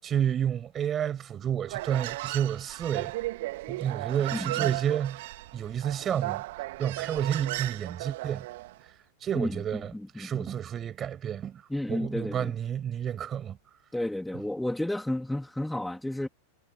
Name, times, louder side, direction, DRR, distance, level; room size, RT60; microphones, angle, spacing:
voice 1, 0.0-3.1 3.7-6.4 6.8-8.5 9.2-9.9 10.2-11.6 11.9-13.6, right 9 dB, 25° right, 7.4 m, -30 dB
Human voice, 1.7-8.7, right 18 dB, 50° right, 2.8 m, -35 dB
voice 2, 4.3-4.8 9.3-10.5 11.7-12.6 13.9-16.3, left 1 dB, 5° left, 3.3 m, -32 dB
figure-of-eight pair, 90°, 0 cm